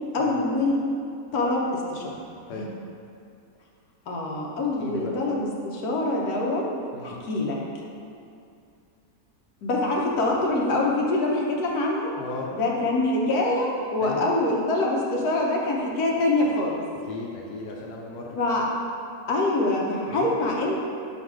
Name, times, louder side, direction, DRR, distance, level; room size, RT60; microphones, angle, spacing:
voice 1, 0.1-0.8 1.3-2.2 2.5-2.6 4.1-6.7 7.0-7.6 9.6-12.1 12.5-16.8 18.3-18.6 19.3-20.8, left 2 dB, 70° left, -2 dB, 1.4 m, -25 dB
voice 2, 4.8-5.1 6.9-7.2 12.2-12.5 14.0-14.3 17.1-18.3 20.1-20.3, left 3 dB, 90° left, -2 dB, 1.3 m, -36 dB
6.1 x 4.0 x 4.7 m, 2.5 s
omnidirectional pair, 1.7 m